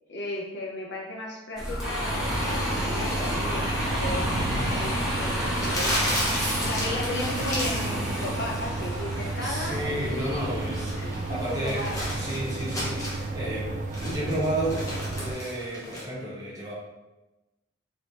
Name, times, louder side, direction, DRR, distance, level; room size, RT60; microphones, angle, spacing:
voice 1, 0.1-6.2 6.6-10.5 10.9-12.0, left 1 dB, 55° left, -1 dB, 0.7 m, -35 dB
Bus, 1.6-12.4, equal, ahead, 1.0 m, -31 dB
sound 1, 2.1-15.3, right 3 dB, 40° right, 0.3 m, -33 dB
Crumpling crinkling, 5.5-8.0 8.3-8.7 10.4-13.3 13.7-16.0, equal, 15° left, 0.9 m, -33 dB
voice 2, 9.4-16.7, right 1 dB, 20° right, -8 dB, 1.2 m, -32 dB
3.3 x 3.0 x 4.0 m, 1.1 s
head